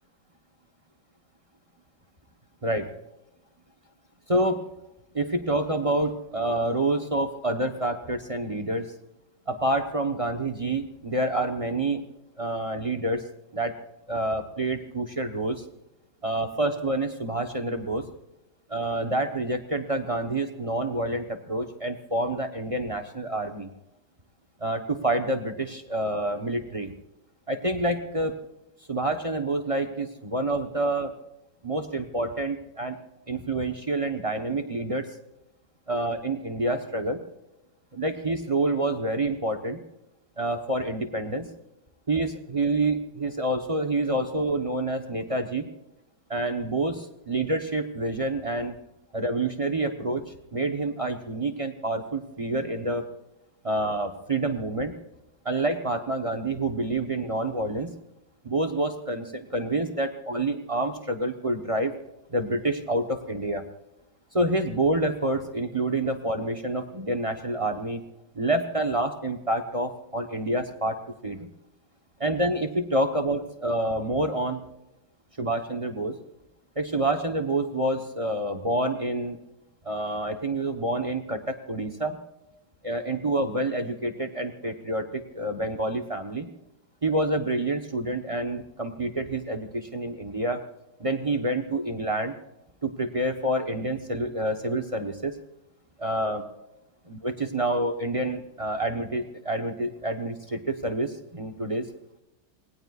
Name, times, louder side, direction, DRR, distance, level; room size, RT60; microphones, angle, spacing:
voice 1, 2.6-2.9 4.3-4.6 5.1-8.9 9.5-12.0 12.4-13.3 13.5-13.8 14.1-15.6 16.2-18.1 18.7-23.7 24.6-26.9 27.5-28.4 28.9-31.1 31.6-33.0 33.3-35.2 35.9-37.2 37.9-39.8 40.4-41.5 42.1-45.7 46.3-48.7 49.1-53.0 53.6-54.9 55.4-57.9 58.4-61.9 62.3-63.6 64.3-68.0 68.4-71.0 71.2-71.5 72.2-74.6 75.4-76.2 76.8-79.4 79.8-82.2 82.8-86.5 87.0-90.6 91.0-92.3 92.8-95.4 96.0-96.4 97.1-101.9, right 1 dB, 30° right, 7 dB, 0.7 m, -28 dB
26.0 x 19.0 x 2.4 m, 0.89 s
omnidirectional pair, 2.0 m